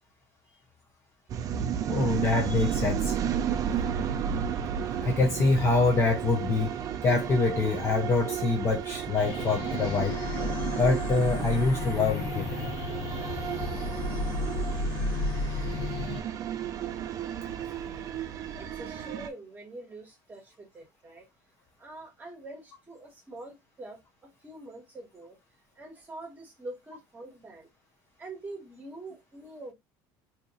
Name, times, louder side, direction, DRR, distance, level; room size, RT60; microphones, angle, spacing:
sound 1, 1.3-19.3, right 8 dB, 35° right, 0.4 m, -33 dB
voice 1, 1.9-3.2 5.0-10.2 10.8-12.5, left 3 dB, 25° left, 0.7 m, -25 dB
sound 2, 9.1-16.2, left 3 dB, 65° left, 0.8 m, -33 dB
voice 2, 18.6-21.2 21.8-24.0 24.4-25.4 25.8-27.7 28.2-29.7, right 2 dB, 15° right, 1.3 m, -44 dB
2.8 x 2.5 x 4.0 m
cardioid pair, 150°, 10 cm